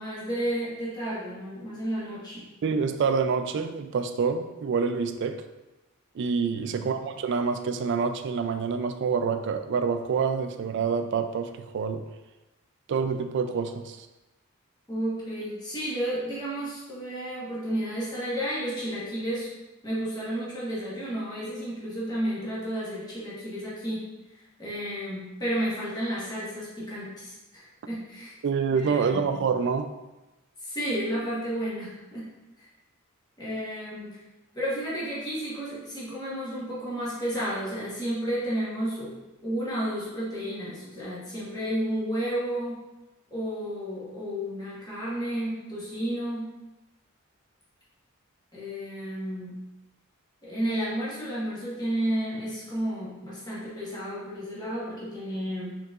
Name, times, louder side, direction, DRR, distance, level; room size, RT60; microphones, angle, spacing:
voice 1, 0.0-2.5 6.5-6.9 14.9-19.5 19.8-24.1 24.6-28.3 28.7-29.3 30.6-32.3 32.6-32.7 33.4-34.2 34.5-39.1 39.4-42.8 43.3-46.5 48.5-49.6 50.4-55.8, equal, 20° left, -8 dB, 1.2 m, -32 dB
voice 2, 2.6-5.4 6.1-12.0 12.9-14.1 28.4-29.9, right 5 dB, 55° right, 8 dB, 0.3 m, -27 dB
4.5 x 3.8 x 2.4 m, 1.0 s
head